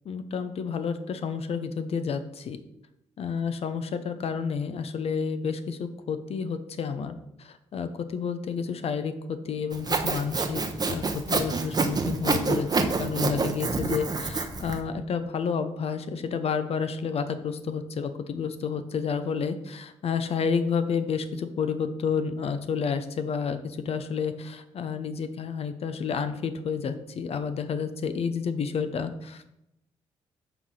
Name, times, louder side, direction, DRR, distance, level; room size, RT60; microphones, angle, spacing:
voice 1, 0.1-2.6 3.2-7.1 7.4-29.4, left 6 dB, 55° left, 10 dB, 0.5 m, -30 dB
Sawing, 9.7-14.8, right 4 dB, 35° right, 0.8 m, -27 dB
5.9 x 3.2 x 5.5 m, 0.83 s
supercardioid pair, 60°, 12 cm